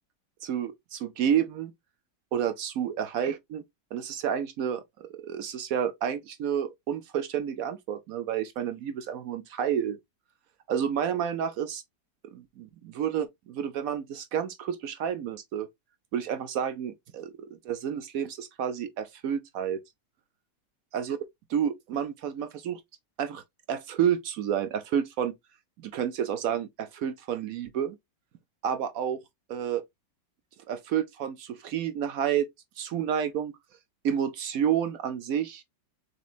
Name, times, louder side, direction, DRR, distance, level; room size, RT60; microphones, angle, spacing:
voice 1, 0.4-1.7 2.3-3.6 3.9-10.0 10.7-11.8 12.2-15.7 16.1-19.8 20.9-21.2 21.5-22.8 23.2-25.3 25.8-28.0 28.6-29.2 29.5-29.8 30.7-32.5 32.8-33.5 34.0-35.6, right 9 dB, 65° right, 0.9 m, -30 dB
6.6 x 3.3 x 2.4 m
omnidirectional pair, 1.9 m